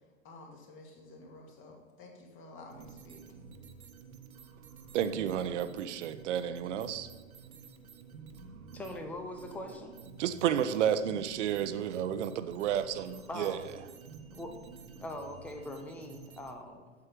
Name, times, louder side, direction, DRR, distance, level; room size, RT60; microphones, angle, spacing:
voice 1, 0.2-3.2, left 2 dB, 30° left, 1 dB, 2.2 m, -51 dB
sound 1, 2.7-16.5, right 5 dB, 90° right, 1.4 m, -51 dB
voice 2, 4.9-7.1 10.2-13.6, right 9 dB, 60° right, 11 dB, 0.9 m, -31 dB
voice 3, 8.7-9.9 13.3-13.6 14.3-14.5 15.0-16.9, left 1 dB, 5° left, 4 dB, 0.4 m, -41 dB
8.5 x 7.7 x 5.0 m, 1.5 s
hypercardioid pair, 130°, 41 cm